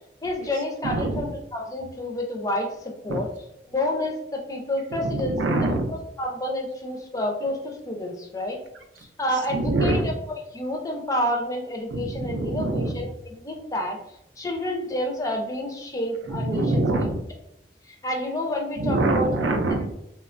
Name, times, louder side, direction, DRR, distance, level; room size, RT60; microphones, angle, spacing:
voice 1, 0.2-3.3 3.7-5.4 5.9-8.6 9.2-13.1 13.4-14.0 14.4-16.8 17.8-19.3, left 1 dB, 20° left, 1 dB, 0.4 m, -29 dB
voice 2, 0.8-1.3 3.1-3.2 4.9-5.9 9.3-10.2 11.9-13.1 16.2-17.2 18.8-19.9, right 2 dB, 85° right, 6 dB, 0.4 m, -25 dB
3.0 x 2.2 x 2.4 m, 0.83 s
head